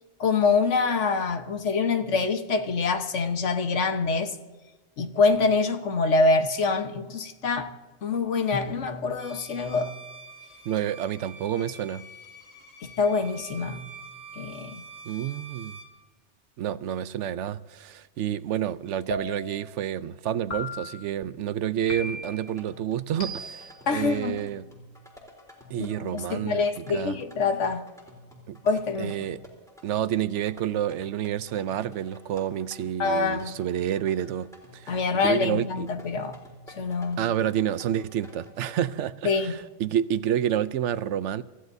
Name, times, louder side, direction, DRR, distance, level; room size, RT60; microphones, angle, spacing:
voice 1, 0.2-4.4 5.0-7.7 8.0-9.9 12.8-13.8 14.4-14.8 23.9-24.4 25.9-27.9 28.6-29.1 33.0-33.6 34.9-36.4 36.8-37.2 39.2-39.6, left 4 dB, 85° left, 1.4 m, -25 dB
Bowed string instrument, 9.2-16.0, right 3 dB, 65° left, 1.8 m, -46 dB
voice 2, 10.7-12.1 15.1-15.8 16.6-24.7 25.7-26.6 26.9-27.2 28.5-28.6 29.0-29.4 29.8-35.0 35.2-35.9 37.2-41.4, right 10 dB, 85° right, 0.9 m, -29 dB
sound 1, 19.1-19.7 20.5-21.1 21.9-22.5 23.2-23.8, left 1 dB, 40° left, 1.4 m, -36 dB
sound 2, 22.0-38.9, left 1 dB, 5° left, 3.5 m, -50 dB
27.0 x 14.5 x 2.7 m
omnidirectional pair, 1.2 m